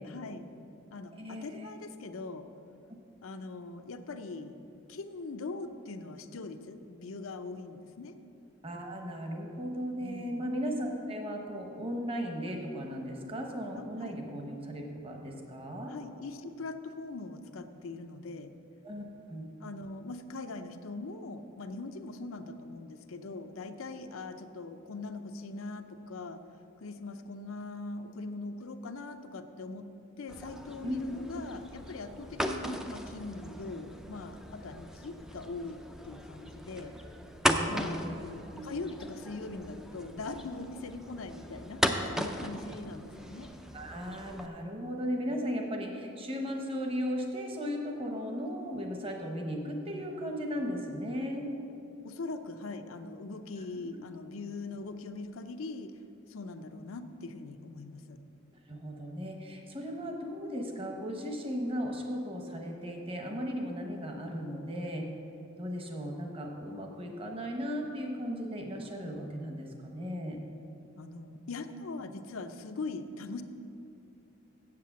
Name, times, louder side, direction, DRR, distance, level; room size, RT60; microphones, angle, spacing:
voice 1, 0.0-0.5 0.9-2.5 3.2-4.6 4.9-8.1 10.0-10.5 13.7-14.2 15.9-18.5 19.6-26.4 26.8-29.9 30.2-35.8 36.0-36.9 37.7-43.5 52.0-55.9 56.3-58.2 71.0-73.4, left 3 dB, 75° left, 8 dB, 0.6 m, -41 dB
voice 2, 1.1-1.7 8.6-15.9 18.8-19.5 30.8-31.4 37.4-38.2 38.5-38.7 43.7-51.5 58.7-65.1 65.6-70.4, equal, 25° right, 2 dB, 1.1 m, -36 dB
sound 1, 30.3-44.5, equal, ahead, 0.4 m, -37 dB
7.6 x 7.6 x 7.3 m, 2.7 s
head